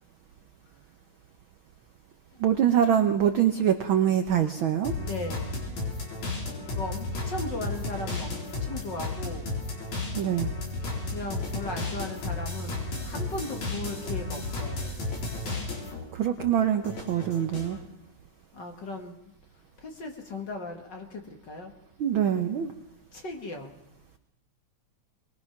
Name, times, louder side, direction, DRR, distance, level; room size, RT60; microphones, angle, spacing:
voice 1, 2.4-4.9 10.1-10.5 16.1-17.8 22.0-22.7, right 9 dB, 75° right, 7 dB, 1.1 m, -24 dB
sound 1, 4.8-16.0 16.4-17.8, left 2 dB, 70° left, 5.3 m, -33 dB
voice 2, 5.0-5.6 6.7-9.5 11.1-14.9 18.5-19.2 19.8-21.7 23.1-23.7, left 2 dB, 40° left, 4 dB, 1.9 m, -37 dB
23.5 x 20.0 x 5.9 m, 0.85 s
omnidirectional pair, 3.5 m